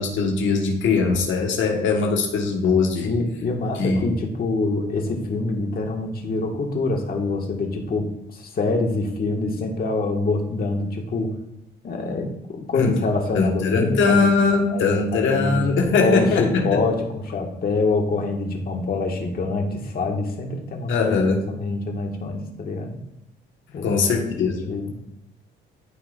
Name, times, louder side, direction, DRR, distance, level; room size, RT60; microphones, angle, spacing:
voice 1, 0.0-3.1 3.8-4.0 12.7-12.9 13.3-16.8 20.9-21.4 23.8-24.7, left 4 dB, 75° left, 1 dB, 1.5 m, -21 dB
voice 2, 3.0-11.3 11.8-14.2 14.7-15.6 16.0-23.0 23.7-25.0, left 3 dB, 50° left, 1 dB, 1.8 m, -25 dB
13.0 x 4.9 x 2.5 m, 0.83 s
cardioid pair, 90°, 20 cm